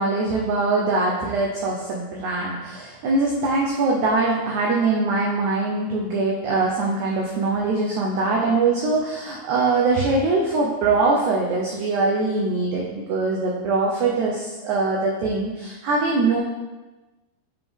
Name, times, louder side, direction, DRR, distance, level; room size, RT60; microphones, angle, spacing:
voice 1, 0.0-16.4, right 3 dB, 80° right, -2 dB, 1.7 m, -22 dB
8.0 x 3.6 x 3.5 m, 1.2 s
omnidirectional pair, 4.2 m